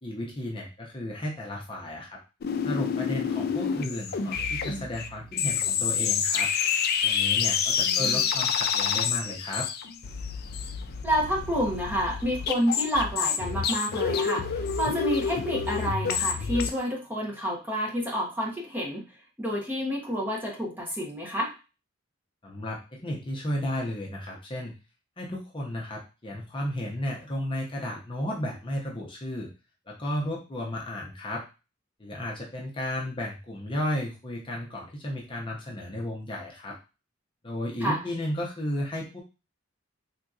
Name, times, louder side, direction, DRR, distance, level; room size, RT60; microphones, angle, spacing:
voice 1, 0.0-2.2 2.6-6.5 7.0-9.7 22.4-24.7 25.2-29.5 29.9-31.4 32.0-36.7 37.4-39.2, left 1 dB, 25° left, -2 dB, 0.7 m, -33 dB
sound 1, 2.4-16.7, left 7 dB, 50° left, 0.4 m, -28 dB
voice 2, 7.8-8.3 11.0-19.0 19.4-21.5 37.8-38.0, equal, 10° right, -2 dB, 0.8 m, -29 dB
3.7 x 2.8 x 2.4 m, 0.30 s
head